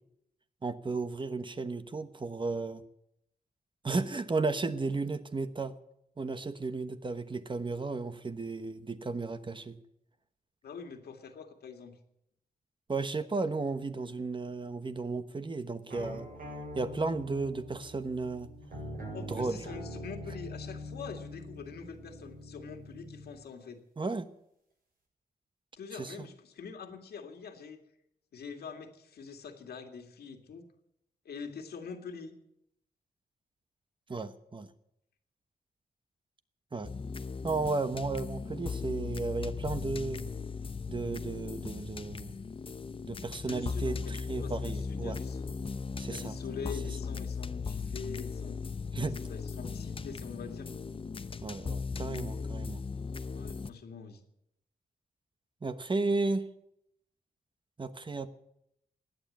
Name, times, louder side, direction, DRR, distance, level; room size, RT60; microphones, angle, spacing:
voice 1, 0.6-2.8 3.8-5.7 6.2-9.8 12.9-16.3 16.7-18.5 19.3-19.6 24.0-24.3 26.0-26.3 34.1-34.7 36.7-36.9 37.4-40.2 40.9-42.3 43.1-45.2 46.0-46.4 48.9-49.1 51.4-52.8 55.6-56.5 57.8-58.3, right 3 dB, 30° right, 11 dB, 1.1 m, -34 dB
voice 2, 10.6-12.0 19.1-23.8 25.8-27.8 28.3-30.6 31.3-32.3 43.4-45.4 46.1-48.6 49.0-50.7 53.3-54.2, left 5 dB, 90° left, 4 dB, 2.2 m, -45 dB
sound 1, 15.9-23.4, left 1 dB, 65° right, 8.0 m, -43 dB
sound 2, 36.8-53.7, left 5 dB, 35° left, 0.7 m, -38 dB
16.0 x 9.5 x 9.1 m, 0.79 s
cardioid pair, 75°, 16 cm